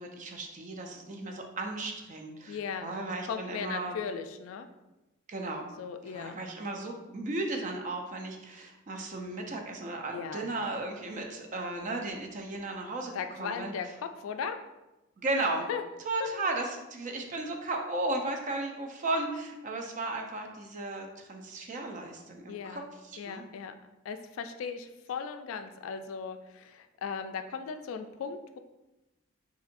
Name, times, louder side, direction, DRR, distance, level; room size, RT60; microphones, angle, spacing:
voice 1, 0.0-3.9 5.3-5.6 6.1-13.7 15.2-15.6 16.0-23.5, right 2 dB, 40° right, 3 dB, 0.4 m, -35 dB
voice 2, 2.5-2.9 3.3-4.7 5.8-6.4 10.1-10.5 13.1-14.6 15.7-15.8 16.2-16.3 22.5-22.9 23.2-23.7 24.1-28.6, left 6 dB, 90° left, 9 dB, 0.3 m, -37 dB
4.0 x 2.7 x 2.5 m, 1.0 s
head